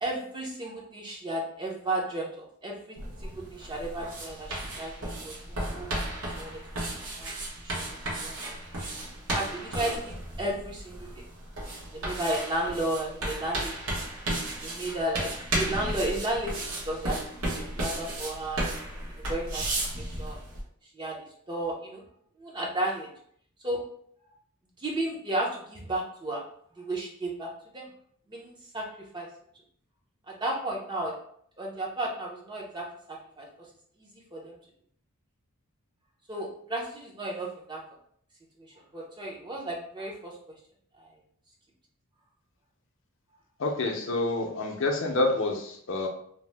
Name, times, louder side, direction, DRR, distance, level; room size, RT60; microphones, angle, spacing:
voice 1, 0.0-3.0 3.2-5.9 6.4-6.9 7.2-7.3 7.6-7.9 8.2-8.3 9.3-11.1 11.9-14.0 14.6-17.2 17.4-18.7 19.3-19.7 20.0-20.4 20.9-21.2 21.5-22.0 22.4-23.1 23.6-23.8 24.8-26.4 26.8-27.5 27.7-27.9 28.3-28.8 29.1-29.3 30.3-31.1 31.6-33.5 34.3-34.6 36.3-37.8 38.9-40.3 41.0-41.1, right 1 dB, 20° right, -2 dB, 0.5 m, -33 dB
sound 1, 3.0-20.6, right 1 dB, 70° right, 0.9 m, -34 dB
voice 2, 43.6-46.1, left 2 dB, 55° left, 2 dB, 0.5 m, -28 dB
2.7 x 2.0 x 3.2 m, 0.64 s
head